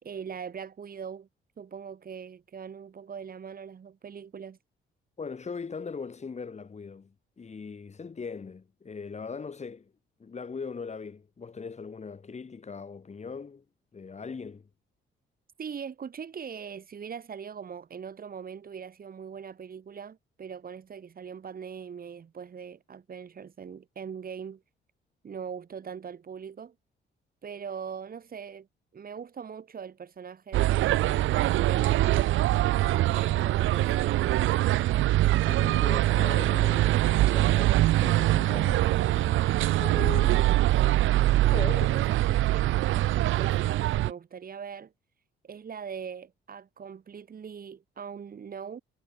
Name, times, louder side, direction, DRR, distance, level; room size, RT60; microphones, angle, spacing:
voice 1, 0.0-1.3 1.6-4.6 15.6-24.6 25.2-26.7 27.4-28.7 28.9-32.3 32.8-34.7 40.3-40.5 41.7-44.9 45.4-48.8, right 7 dB, 45° right, 5.1 m, -41 dB
voice 2, 5.2-9.9 10.2-13.6 13.9-14.7 35.4-39.5 39.8-40.9 41.5-42.0, left 5 dB, 35° left, 4.4 m, -40 dB
sound 1, 30.5-44.1, right 15 dB, 80° right, 0.7 m, -23 dB
cardioid pair, 90°, 20 cm